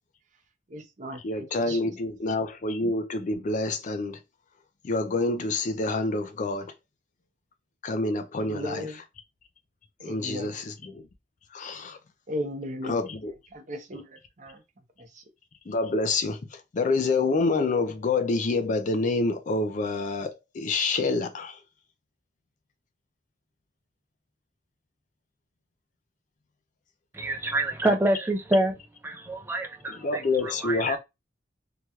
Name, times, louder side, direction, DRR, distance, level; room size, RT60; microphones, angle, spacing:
voice 1, 0.7-1.9 8.4-9.0 10.1-10.5 12.3-13.0 13.5-14.6 15.1-15.2, equal, 40° right, 0.7 m, -36 dB
voice 2, 1.2-4.2 4.8-6.7 7.8-8.9 10.0-11.1 11.5-12.0 12.8-13.3 15.7-21.6 29.9-31.0, left 3 dB, 40° left, 0.4 m, -27 dB
voice 3, 27.1-28.7 29.0-31.0, right 1 dB, 10° right, 0.5 m, -27 dB
3.0 x 2.9 x 2.3 m
head